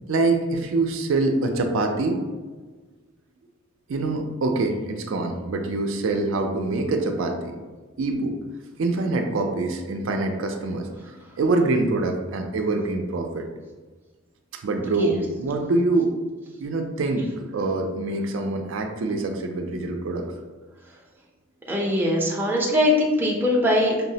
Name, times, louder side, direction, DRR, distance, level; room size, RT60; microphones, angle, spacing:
voice 1, 0.1-2.2 3.9-7.6 8.0-8.3 8.8-10.9 11.4-13.5 14.6-16.1 16.6-17.3 17.5-20.3, right 2 dB, 70° right, 4 dB, 0.4 m, -25 dB
voice 2, 21.7-24.1, left 1 dB, 10° right, -3 dB, 0.5 m, -21 dB
5.5 x 2.0 x 2.7 m, 1.3 s
head